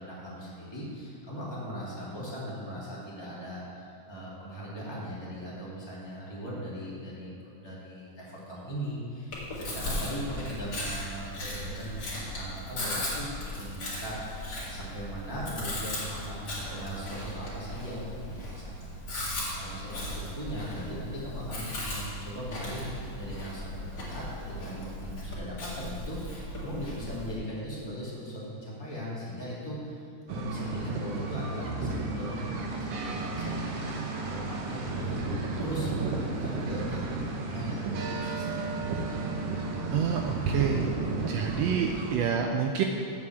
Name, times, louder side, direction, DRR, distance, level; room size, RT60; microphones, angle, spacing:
voice 1, 0.0-19.2 19.5-30.0 30.3-37.2 37.5-38.8, equal, 10° left, -8 dB, 2.3 m, -39 dB
Chewing mastication, 9.3-27.3, left 1 dB, 35° left, 2.3 m, -37 dB
sound 1, 30.3-42.2, right 3 dB, 65° right, 1.8 m, -33 dB
voice 2, 39.9-41.0 41.3-42.8, right 7 dB, 80° right, 3 dB, 1.5 m, -28 dB
7.8 x 6.0 x 7.8 m, 2.6 s
omnidirectional pair, 3.3 m